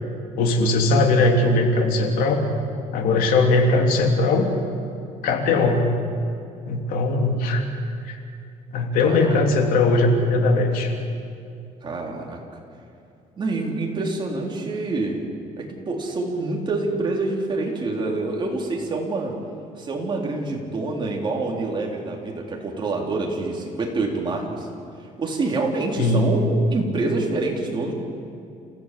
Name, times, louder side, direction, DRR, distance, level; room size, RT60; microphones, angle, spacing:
voice 1, 0.4-2.4 2.9-4.5 5.2-5.9 6.7-7.6 8.0-8.2 8.7-10.9 26.0-26.3, left 2 dB, 90° left, 3 dB, 3.1 m, -19 dB
voice 2, 9.0-9.3 11.8-12.4 13.4-15.3 15.6-19.4 19.8-24.7 25.2-27.9, right 3 dB, 35° right, 0 dB, 3.9 m, -26 dB
28.5 x 16.0 x 7.8 m, 2.6 s
cardioid pair, 130°, 14 cm